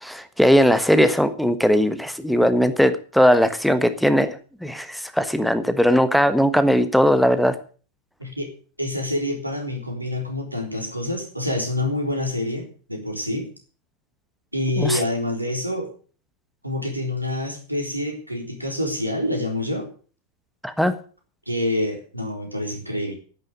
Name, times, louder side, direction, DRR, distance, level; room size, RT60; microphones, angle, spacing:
voice 1, 0.0-7.6 14.8-15.0 20.6-20.9, equal, ahead, 10 dB, 1.3 m, -19 dB
voice 2, 8.8-13.5 14.5-15.9 16.6-19.9 21.5-23.1, left 1 dB, 85° right, 3 dB, 3.7 m, -27 dB
10.5 x 9.8 x 8.2 m, 0.40 s
figure-of-eight pair, 90°, 0 cm